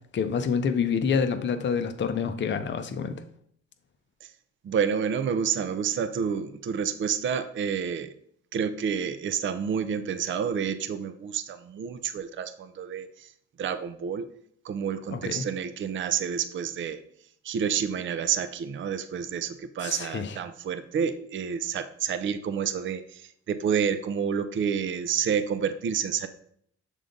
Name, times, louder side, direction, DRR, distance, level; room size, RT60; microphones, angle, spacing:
voice 1, 0.1-3.2 15.1-15.4 19.8-20.4, left 6 dB, 40° left, 8 dB, 0.6 m, -27 dB
voice 2, 4.6-8.1 8.5-13.3 13.6-14.2 14.6-17.0 17.4-26.3, right 7 dB, 40° right, 10 dB, 0.5 m, -29 dB
6.6 x 3.7 x 3.8 m, 0.66 s
cardioid pair, 90°, 30 cm